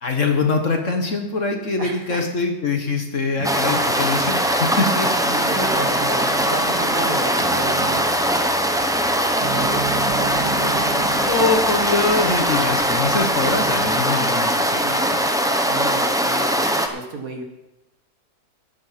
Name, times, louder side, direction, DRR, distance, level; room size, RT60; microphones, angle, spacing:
voice 1, 0.0-5.0 11.2-15.2, left 4 dB, 50° left, 4 dB, 1.5 m, -23 dB
voice 2, 1.8-2.3 3.4-3.6 5.0-8.3 9.5-10.8 12.1-12.4 14.8-15.3 15.7-17.4, right 2 dB, 50° right, 4 dB, 2.0 m, -32 dB
sound 1, 3.3-14.0, right 6 dB, 75° right, 2.0 m, -34 dB
sound 2, 3.4-16.9, equal, 5° right, 0.4 m, -21 dB
sound 3, 8.3-8.4 8.8-9.1 9.6-10.5 11.0-11.4 12.2-13.0, equal, 20° right, 2.4 m, -43 dB
12.5 x 9.6 x 5.8 m, 0.96 s
omnidirectional pair, 1.9 m